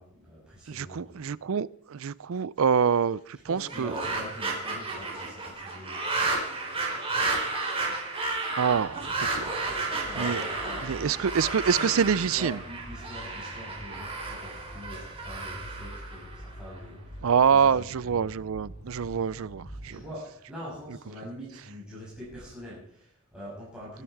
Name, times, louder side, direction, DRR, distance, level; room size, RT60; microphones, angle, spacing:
voice 1, 0.0-1.3 3.4-6.1 9.9-18.2 19.9-24.0, equal, 5° right, 6.8 m, -44 dB
voice 2, 0.7-3.9 8.5-9.6 10.2-10.4 10.9-12.6 17.2-20.0, right 6 dB, 70° right, 0.5 m, -26 dB
sound 1, 3.6-16.8, right 3 dB, 25° right, 4.2 m, -32 dB
sound 2, 8.6-19.9, equal, 75° left, 6.0 m, -46 dB
23.5 x 10.0 x 4.7 m
head